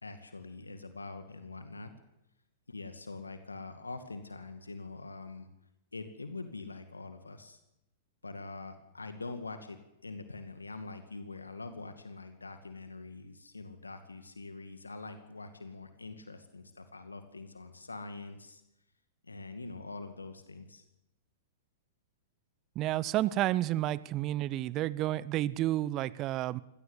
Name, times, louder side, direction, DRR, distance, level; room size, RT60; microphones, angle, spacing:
voice 1, 0.0-1.9 2.7-5.5 5.9-7.6 8.2-18.6 19.2-20.8, left 3 dB, 80° left, 9 dB, 2.2 m, -44 dB
voice 2, 22.7-26.6, right 14 dB, 35° right, 21 dB, 0.9 m, -30 dB
24.5 x 18.0 x 8.3 m, 0.89 s
figure-of-eight pair, 100°, 0 cm